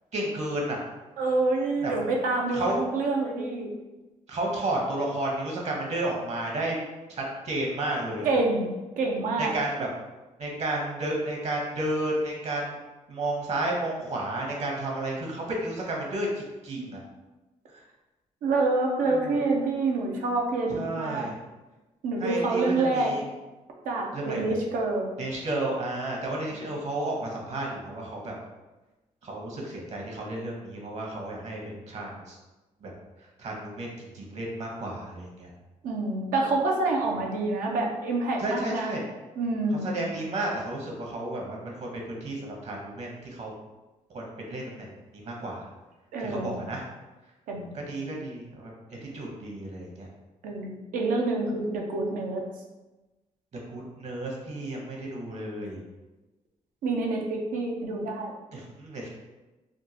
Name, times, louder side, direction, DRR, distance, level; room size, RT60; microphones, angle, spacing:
voice 1, 0.1-0.8 1.8-1.9 2.5-2.8 4.3-6.8 7.1-8.3 9.4-9.9 10.4-12.8 13.1-17.0 19.1-19.4 20.7-21.4 22.2-23.2 24.1-24.5 25.2-28.3 29.2-32.4 32.8-32.9 33.4-35.5 38.4-39.0 39.8-43.5 44.1-44.9 45.1-45.7 46.2-46.8 47.7-48.7 49.1-50.1 53.7-55.8 58.5-59.1, right 1 dB, 55° right, -1 dB, 1.0 m, -32 dB
voice 2, 1.2-3.7 8.2-9.5 16.8-16.9 18.4-21.3 22.0-23.1 23.8-25.1 26.5-26.6 35.8-38.9 39.4-40.0 46.1-46.7 47.5-47.8 50.4-52.4 56.8-58.3, right 3 dB, 85° right, 0 dB, 0.6 m, -27 dB
3.6 x 2.2 x 2.8 m, 1.1 s
cardioid pair, 80°, 14 cm